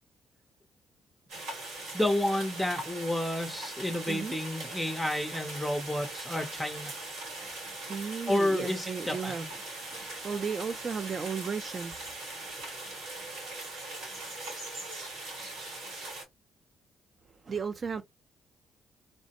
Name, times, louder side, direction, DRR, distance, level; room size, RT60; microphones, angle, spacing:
sound 1, 1.3-16.2, right 2 dB, 85° right, 2.1 m, -40 dB
voice 1, 1.9-7.1 8.3-9.5, left 1 dB, 5° left, 0.6 m, -30 dB
voice 2, 7.3-12.2 17.3-18.0, right 5 dB, 40° right, 0.3 m, -36 dB
3.1 x 2.0 x 2.8 m
cardioid pair, 90°, 0 cm